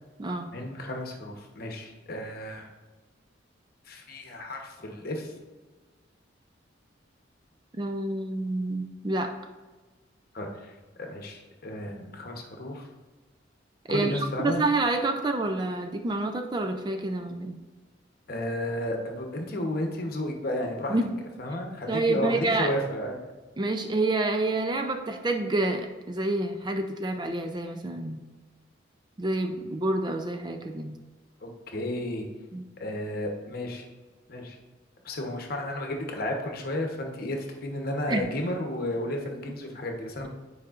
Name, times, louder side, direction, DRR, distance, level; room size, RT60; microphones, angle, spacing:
voice 1, 0.5-2.7 3.9-5.3 10.3-10.7 11.0-12.9 13.9-14.6 18.3-21.0 21.4-23.2 31.4-32.2 32.8-33.9 34.3-34.6 35.0-40.3, left 1 dB, 50° left, 2 dB, 0.9 m, -33 dB
voice 2, 7.8-9.3 13.9-17.6 20.9-21.1 21.9-22.7 23.6-28.2 29.2-31.0 32.5-32.6 38.1-38.3, right 2 dB, 25° right, 5 dB, 0.4 m, -28 dB
9.6 x 4.7 x 2.4 m, 1.3 s
head